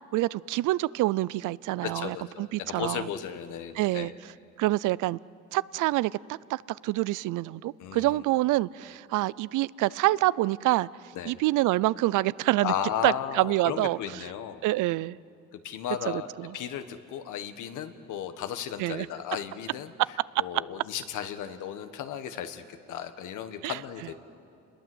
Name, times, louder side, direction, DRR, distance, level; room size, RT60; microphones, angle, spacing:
voice 1, 0.1-3.1 3.8-4.1 4.6-5.2 5.5-10.9 11.3-12.7 13.0-14.2 14.6-15.2 16.1-16.5 18.8-19.1 23.6-23.8, right 18 dB, 85° right, 21 dB, 0.5 m, -27 dB
voice 2, 1.8-4.2 7.8-8.2 11.1-11.3 12.6-14.6 15.6-19.9 20.4-24.1, left 9 dB, 85° left, 9 dB, 1.5 m, -35 dB
28.0 x 21.0 x 7.9 m, 2.5 s
cardioid pair, 90°, 30 cm